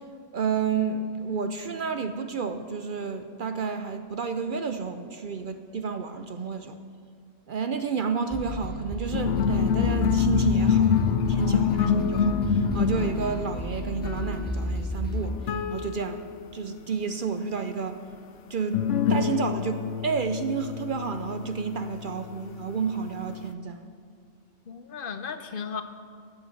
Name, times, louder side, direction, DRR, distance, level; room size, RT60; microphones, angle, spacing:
voice 1, 0.3-6.8 7.5-16.2 16.5-18.0 18.5-18.8 19.1-23.9, right 5 dB, 55° right, 8 dB, 0.6 m, -31 dB
sound 1, 8.3-15.3, left 1 dB, 10° left, 0.7 m, -32 dB
sound 2, 9.1-16.5 18.7-22.7, left 7 dB, 90° left, 0.9 m, -27 dB
voice 2, 11.3-12.0 24.7-25.8, left 6 dB, 55° left, 9 dB, 0.8 m, -35 dB
13.5 x 7.8 x 6.4 m, 2.3 s
omnidirectional pair, 1.2 m